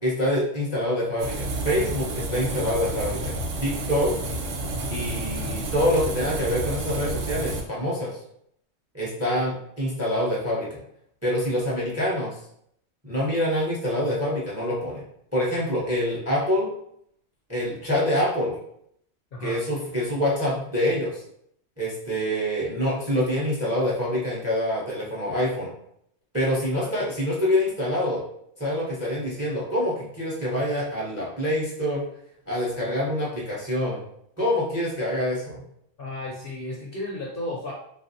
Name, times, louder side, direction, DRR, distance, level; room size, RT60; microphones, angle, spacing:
voice 1, 0.0-3.3 3.6-4.1 4.9-8.2 8.9-10.8 11.2-12.3 13.0-15.0 15.3-16.7 17.5-18.6 19.4-21.2 21.8-25.7 26.3-28.2 28.6-32.0 32.5-34.0 34.4-35.6, left 1 dB, 15° right, -5 dB, 0.6 m, -26 dB
sound 1, 1.2-7.6, right 2 dB, 75° right, 0.9 m, -30 dB
voice 2, 36.0-37.7, left 2 dB, 60° left, -2 dB, 0.6 m, -33 dB
3.1 x 2.4 x 2.6 m, 0.71 s
omnidirectional pair, 1.3 m